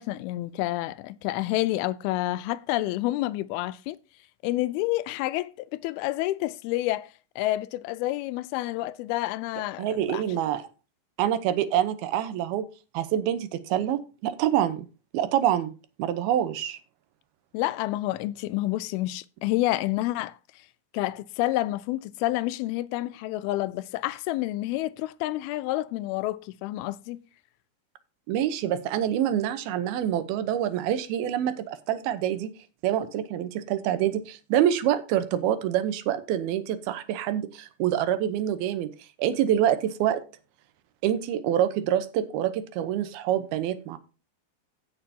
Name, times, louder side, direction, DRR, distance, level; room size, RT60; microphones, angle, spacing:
voice 1, 0.0-4.0 4.4-10.4 17.5-20.4 20.9-27.2, left 16 dB, 90° left, 2.5 m, -29 dB
voice 2, 9.8-10.6 11.2-12.7 12.9-14.9 15.1-15.7 16.0-16.8 28.3-32.5 32.8-38.9 39.2-40.2 41.0-44.0, right 11 dB, 85° right, 2.8 m, -26 dB
15.5 x 6.6 x 2.8 m
omnidirectional pair, 4.3 m